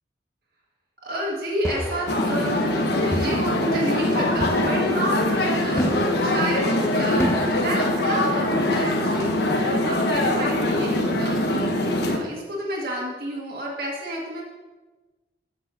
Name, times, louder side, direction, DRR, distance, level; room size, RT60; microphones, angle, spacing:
voice 1, 1.0-5.9 6.2-14.4, equal, 55° right, -3 dB, 1.8 m, -30 dB
sound 1, 1.6-2.2 3.1-3.5 4.4-4.9 5.8-6.3 7.2-7.7, equal, 15° left, 0.8 m, -29 dB
sound 2, 2.1-12.2, left 1 dB, 65° left, 1.3 m, -23 dB
7.6 x 5.9 x 7.6 m, 1.2 s
head